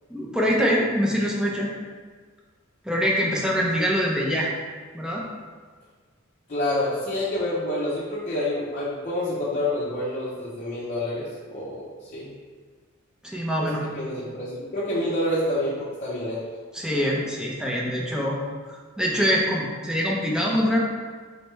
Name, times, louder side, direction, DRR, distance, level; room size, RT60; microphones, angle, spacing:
voice 1, 0.1-1.7 2.8-4.5 4.9-5.3 13.2-13.8 16.7-18.4 18.7-20.8, equal, 5° right, -3 dB, 0.6 m, -24 dB
voice 2, 6.5-12.3 13.6-16.4, left 1 dB, 35° left, -10 dB, 0.7 m, -28 dB
4.2 x 3.3 x 3.1 m, 1.5 s
head